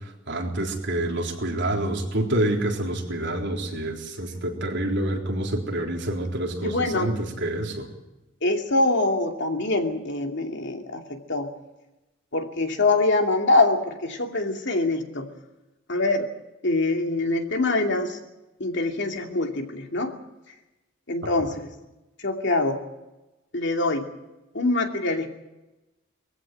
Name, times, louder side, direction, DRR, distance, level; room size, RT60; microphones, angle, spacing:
voice 1, 0.3-7.9, right 1 dB, 65° right, 0 dB, 3.8 m, -27 dB
voice 2, 6.6-7.1 8.4-11.5 12.3-15.3 15.9-16.3 16.6-18.2 18.6-20.1 21.1-21.7 22.2-22.8 23.5-24.1 24.5-25.3, left 2 dB, 65° left, 4 dB, 2.6 m, -24 dB
21.5 x 15.5 x 9.1 m, 1.0 s
head